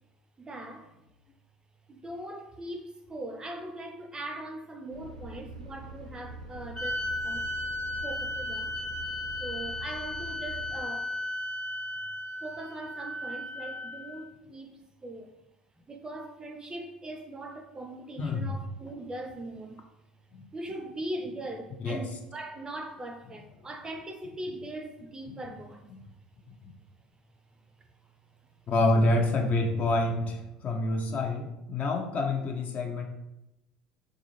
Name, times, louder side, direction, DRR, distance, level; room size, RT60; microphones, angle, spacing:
voice 1, 0.4-1.0 1.9-7.5 8.0-8.7 9.4-11.1 12.4-15.3 15.9-19.9 20.5-25.9 27.8-27.9, right 1 dB, 20° right, 0.5 m, -40 dB
sound 1, 4.9-10.8, right 2 dB, 90° right, 0.4 m, -44 dB
sound 2, 6.7-14.2, left 1 dB, 20° left, 1.0 m, -35 dB
voice 2, 18.2-18.5 21.8-22.0 28.7-33.0, left 2 dB, 40° left, 0.7 m, -27 dB
3.9 x 2.5 x 3.0 m
figure-of-eight pair, 65°, 4 cm